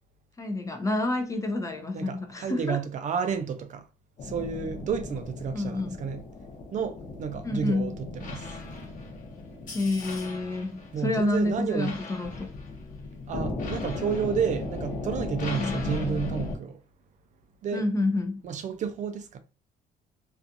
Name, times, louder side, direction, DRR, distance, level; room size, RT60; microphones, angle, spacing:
voice 1, 0.4-2.8 5.5-6.0 7.4-8.0 9.7-12.5 15.5-15.8 17.7-18.4, left 2 dB, 20° left, 0.5 m, -29 dB
voice 2, 1.9-3.9 4.2-6.2 6.7-8.5 10.9-12.0 13.3-16.8 17.6-17.8 18.4-19.4, right 7 dB, 45° right, 0.4 m, -31 dB
sound 1, 4.2-16.6, left 3 dB, 50° left, 0.8 m, -36 dB
2.4 x 2.4 x 2.6 m
cardioid pair, 110°, 17 cm